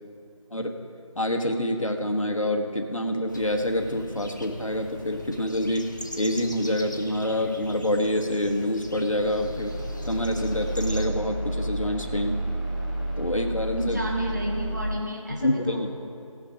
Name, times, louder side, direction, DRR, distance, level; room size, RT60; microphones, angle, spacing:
voice 1, 1.1-5.9 6.2-9.7 10.1-12.4 13.2-14.0 15.4-15.9, left 1 dB, 70° left, 3 dB, 1.3 m, -26 dB
sound 1, 3.3-11.1, equal, 35° left, 0.8 m, -41 dB
sound 2, 9.1-14.9, right 1 dB, 15° left, 1.2 m, -31 dB
voice 2, 13.8-15.9, equal, 30° right, -2 dB, 1.6 m, -31 dB
16.5 x 6.1 x 5.6 m, 2.6 s
figure-of-eight pair, 170°, 18 cm